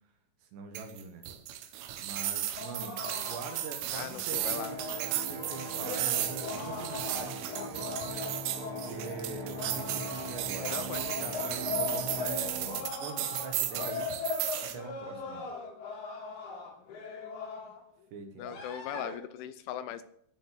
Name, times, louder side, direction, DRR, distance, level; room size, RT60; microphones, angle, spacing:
voice 1, 0.4-1.3 2.0-8.0 8.6-10.7 11.2-14.1 14.6-15.5 18.1-18.6, right 5 dB, 70° right, 6 dB, 3.2 m, -44 dB
sound 1, 0.8-14.8, right 12 dB, 90° right, 3.7 m, -35 dB
sound 2, 2.6-17.8 18.4-19.2, left 4 dB, 55° left, 4.4 m, -40 dB
voice 2, 3.9-4.8 10.7-11.4 18.4-20.0, left 10 dB, 80° left, 12 dB, 3.0 m, -39 dB
sound 3, 4.4-12.8, right 1 dB, 50° right, 3.3 m, -42 dB
15.0 x 6.6 x 7.6 m, 0.72 s
omnidirectional pair, 5.8 m